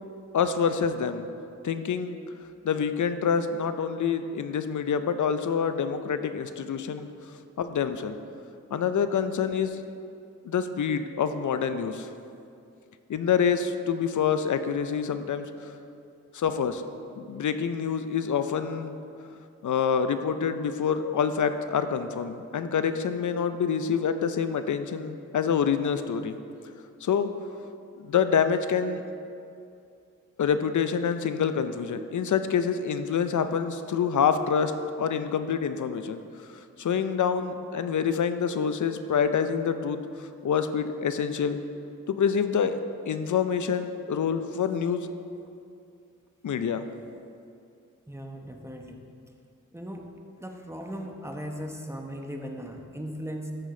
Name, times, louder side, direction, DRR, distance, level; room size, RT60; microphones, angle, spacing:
voice 1, 0.3-1.3 1.6-2.2 2.6-7.1 7.6-8.1 8.7-9.8 10.4-12.1 13.1-15.7 16.3-16.8 17.2-18.9 19.6-26.4 27.0-27.3 28.0-29.0 30.4-34.7 35.0-36.2 36.8-41.6 42.1-42.8 43.1-45.1 46.4-46.8, left 7 dB, 70° left, 10 dB, 0.5 m, -26 dB
voice 2, 48.1-49.0 49.7-50.1 50.4-53.5, equal, 10° right, 2 dB, 0.9 m, -38 dB
13.5 x 5.0 x 3.8 m, 2.5 s
wide cardioid pair, 70°, 31 cm